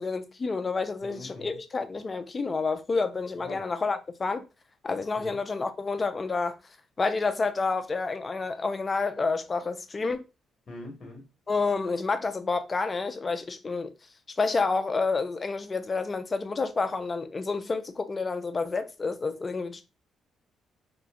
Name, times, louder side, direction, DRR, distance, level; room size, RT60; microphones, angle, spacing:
voice 1, 0.0-4.4 4.8-6.6 7.0-10.2 11.5-13.9 14.4-19.8, left 4 dB, 30° left, 0.4 m, -29 dB
voice 2, 1.0-1.6 3.3-3.6 5.1-5.4 10.7-11.2, left 2 dB, 50° left, 1.1 m, -42 dB
2.8 x 2.5 x 2.3 m
cardioid pair, 90°, 0 cm